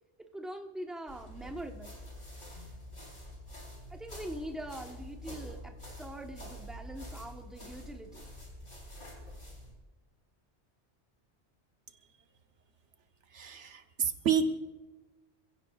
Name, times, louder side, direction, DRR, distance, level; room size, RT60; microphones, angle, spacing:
voice 1, 0.3-2.0 3.9-8.3, right 1 dB, ahead, 3 dB, 1.2 m, -43 dB
sound 1, 1.1-9.7, equal, 50° left, 4.6 m, -47 dB
voice 2, 13.3-14.5, right 6 dB, 90° right, 7 dB, 1.4 m, -29 dB
27.5 x 16.5 x 2.5 m, 1.2 s
omnidirectional pair, 1.1 m